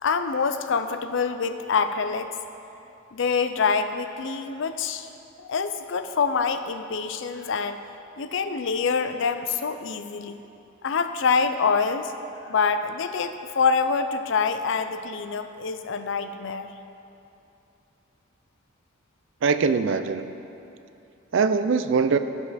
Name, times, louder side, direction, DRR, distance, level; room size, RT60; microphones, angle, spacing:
voice 1, 0.0-2.3 3.1-5.1 5.4-7.8 8.2-10.4 10.8-12.1 12.5-16.7, left 5 dB, 65° left, 9 dB, 0.5 m, -25 dB
voice 2, 19.4-20.3 21.3-22.2, right 5 dB, 65° right, 11 dB, 0.4 m, -22 dB
16.0 x 5.4 x 4.2 m, 2.7 s
head